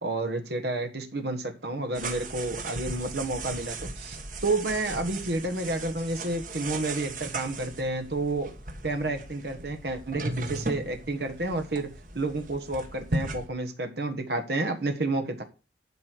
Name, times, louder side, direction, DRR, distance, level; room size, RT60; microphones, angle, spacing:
voice 1, 0.0-8.5 8.8-15.4, right 2 dB, 65° right, 6 dB, 1.5 m, -30 dB
sound 1, 1.9-13.5, right 2 dB, 45° right, 1.7 m, -37 dB
11.5 x 4.7 x 6.5 m, 0.33 s
head